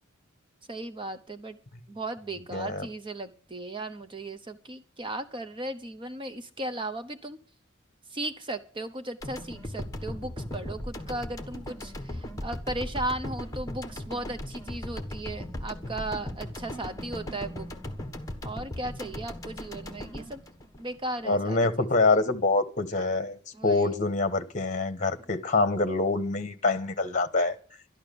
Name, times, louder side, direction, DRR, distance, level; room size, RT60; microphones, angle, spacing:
voice 1, 0.7-1.6 1.9-7.4 8.1-17.7 18.4-20.4 20.8-21.9 23.5-24.1, right 2 dB, 25° right, 0.8 m, -36 dB
voice 2, 2.5-2.9 21.2-27.5, left 3 dB, 40° left, 1.2 m, -25 dB
sound 1, 9.2-21.4, left 1 dB, 15° left, 1.3 m, -38 dB
12.0 x 11.5 x 6.9 m
head